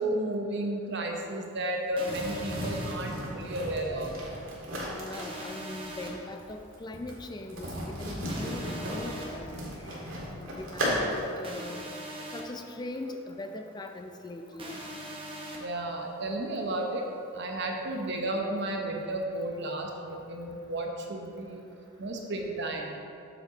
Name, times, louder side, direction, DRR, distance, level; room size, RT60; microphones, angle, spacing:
voice 1, 0.0-4.1 15.6-17.0 17.3-21.6 22.0-22.9, right 1 dB, 60° right, 1 dB, 1.0 m, -33 dB
sound 1, 2.0-2.9 5.1-6.1 8.3-9.3 11.4-12.4 14.6-15.6, right 1 dB, 25° right, 1.2 m, -40 dB
sound 2, 2.1-11.4, equal, 80° right, 2.0 m, -35 dB
voice 2, 4.9-9.6 10.0-11.9 12.3-14.8, left 2 dB, 20° left, 5 dB, 0.4 m, -41 dB
7.7 x 7.2 x 3.9 m, 2.5 s
head